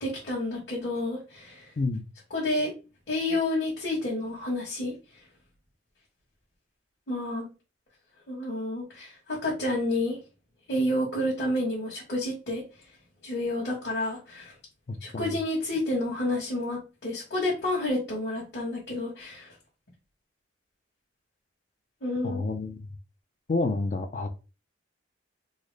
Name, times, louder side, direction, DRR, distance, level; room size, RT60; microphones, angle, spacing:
voice 1, 0.0-1.6 2.3-2.7 3.1-4.9 7.1-7.5 8.3-10.2 10.7-12.6 13.2-14.5 15.0-19.5 22.0-22.4, left 1 dB, 55° left, -6 dB, 1.2 m, -29 dB
voice 2, 14.9-15.4 22.2-22.9 23.5-24.3, left 3 dB, 40° left, 6 dB, 0.4 m, -29 dB
3.9 x 2.0 x 3.1 m, 0.31 s
head